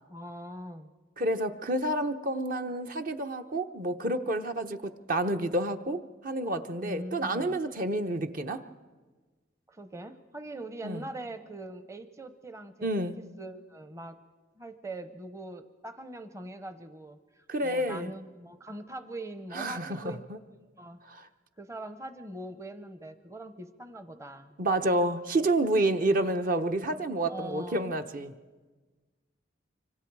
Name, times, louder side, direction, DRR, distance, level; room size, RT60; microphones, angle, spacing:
voice 1, 0.1-0.9 6.8-7.6 9.7-12.9 13.2-14.2 14.6-20.3 20.8-21.0 21.6-24.6 27.3-27.9, right 1 dB, 15° right, 10 dB, 0.8 m, -42 dB
voice 2, 1.2-8.6 10.8-11.0 12.8-13.2 17.5-18.1 19.5-20.4 21.1-21.3 24.6-28.3, right 1 dB, 45° right, 8 dB, 0.9 m, -29 dB
25.5 x 25.0 x 4.7 m, 1.3 s
head